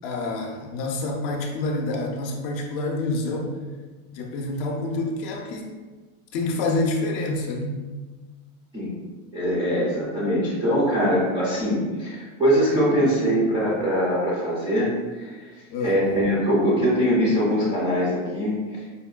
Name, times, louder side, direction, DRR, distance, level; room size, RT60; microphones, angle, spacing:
voice 1, 0.0-3.6 4.1-5.7 6.3-7.8 15.7-16.0, left 2 dB, 45° left, 1 dB, 0.5 m, -27 dB
voice 2, 9.3-14.9 15.2-15.3 15.8-18.9, equal, 15° right, -8 dB, 0.4 m, -22 dB
5.1 x 2.1 x 2.3 m, 1.3 s
supercardioid pair, 145°, 43 cm